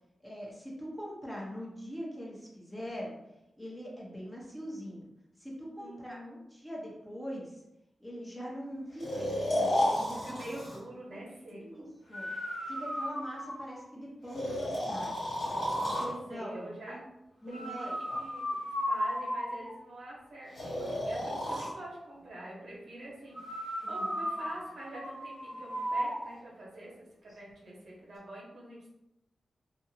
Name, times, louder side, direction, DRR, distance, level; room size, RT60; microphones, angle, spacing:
voice 1, 0.2-3.1 3.6-5.1 5.4-6.2 6.5-7.6 8.0-10.2 11.1-11.2 11.6-12.3 12.6-15.3 15.8-17.0 17.4-18.2 23.8-24.3, equal, 10° left, -4 dB, 0.8 m, -42 dB
voice 2, 5.8-6.4 10.2-11.9 15.9-16.9 17.5-17.9 18.2-18.6 18.9-23.4 23.9-28.9, right 1 dB, 75° right, -4 dB, 1.0 m, -45 dB
Breathing, 9.0-10.8 12.1-13.8 14.3-16.1 17.5-19.8 20.5-21.7 23.3-26.2, equal, 85° left, 1.2 m, -33 dB
2.6 x 2.4 x 2.7 m, 0.90 s
wide cardioid pair, 90°, 0 cm